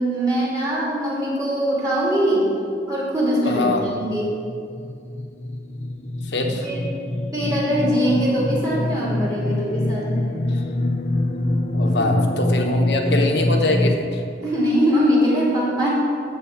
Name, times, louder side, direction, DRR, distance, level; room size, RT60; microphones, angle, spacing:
voice 1, 0.0-2.5 2.9-4.3 6.3-6.8 7.3-10.3 11.9-12.1 14.4-15.9, equal, 20° right, -7 dB, 2.8 m, -22 dB
voice 2, 3.4-3.9 6.2-6.7 11.7-14.2, left 2 dB, 70° left, 3 dB, 1.0 m, -23 dB
sound 1, 4.2-13.9, left 1 dB, 35° left, 0.5 m, -24 dB
12.5 x 4.3 x 7.3 m, 2.4 s
head